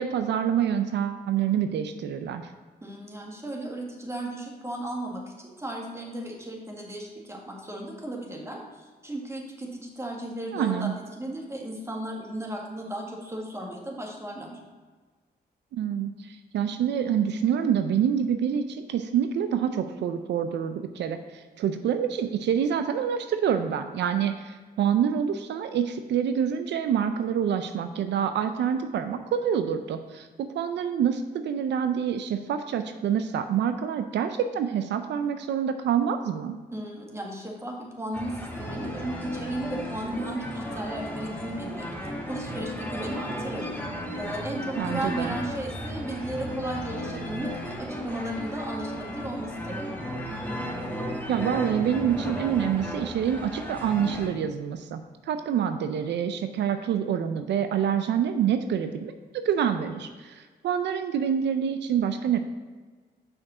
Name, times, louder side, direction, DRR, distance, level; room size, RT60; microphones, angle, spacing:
voice 1, 0.0-2.5 10.5-10.9 15.7-36.6 44.8-45.4 51.3-62.4, right 8 dB, 85° right, 8 dB, 0.5 m, -27 dB
voice 2, 2.8-14.6 36.7-43.7 44.2-49.9, right 1 dB, 15° right, -1 dB, 1.8 m, -35 dB
sound 1, 38.1-54.3, equal, 10° left, 2.2 m, -35 dB
6.0 x 5.2 x 6.1 m, 1.4 s
cardioid pair, 80°, 18 cm